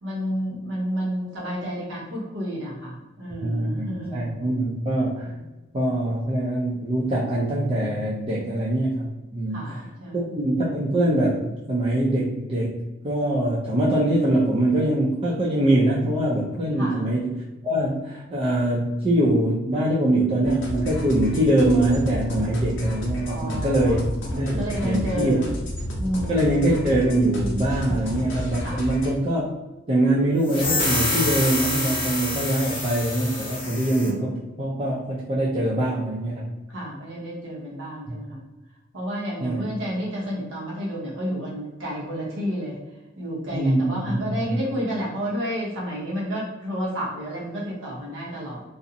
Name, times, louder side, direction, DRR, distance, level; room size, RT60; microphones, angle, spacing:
voice 1, 0.0-4.4 5.2-5.4 9.5-10.3 16.8-17.0 23.2-24.0 24.6-25.4 26.0-26.5 27.9-28.1 28.6-28.8 36.7-38.4 38.9-42.8 43.2-48.6, equal, 80° right, -6 dB, 0.7 m, -30 dB
voice 2, 3.4-5.3 5.7-9.1 9.3-9.8 10.3-12.8 13.0-24.0 24.3-25.4 26.3-29.5 29.9-36.5 39.4-39.7 43.5-44.6, right 1 dB, 30° right, -7 dB, 0.4 m, -23 dB
sound 1, 20.4-29.1, equal, 75° left, 0.7 m, -31 dB
sound 2, 30.4-34.1, left 2 dB, 30° left, 0.7 m, -27 dB
2.5 x 2.0 x 2.6 m, 1.1 s
head